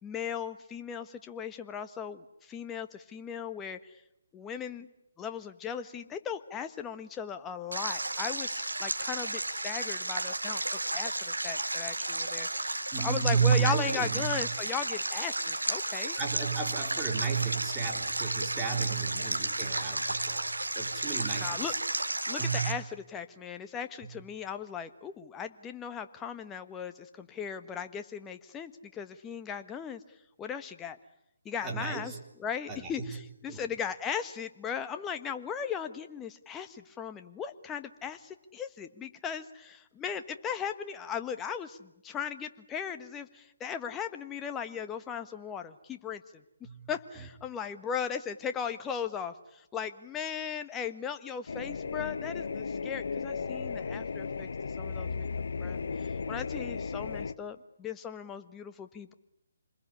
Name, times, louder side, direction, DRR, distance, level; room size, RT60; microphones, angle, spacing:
voice 1, 0.0-3.8 4.3-4.9 5.2-16.2 18.9-19.2 21.4-21.7 22.3-30.0 30.4-31.0 31.4-32.1 32.4-46.4 46.9-54.5 54.8-55.8 56.3-59.1, left 7 dB, 15° left, 8 dB, 1.4 m, -37 dB
Stream, 7.7-22.7, right 2 dB, 90° right, 3.3 m, -33 dB
voice 2, 12.9-14.4 16.2-21.8 22.4-22.8 24.0-24.1 31.6-32.2 32.7-33.2 33.5-33.7 46.6-46.9, right 6 dB, 15° right, 1 dB, 3.8 m, -32 dB
sound 1, 51.5-57.3, left 5 dB, 65° left, 1.0 m, -35 dB
28.0 x 21.5 x 9.9 m, 0.84 s
figure-of-eight pair, 145°, 0 cm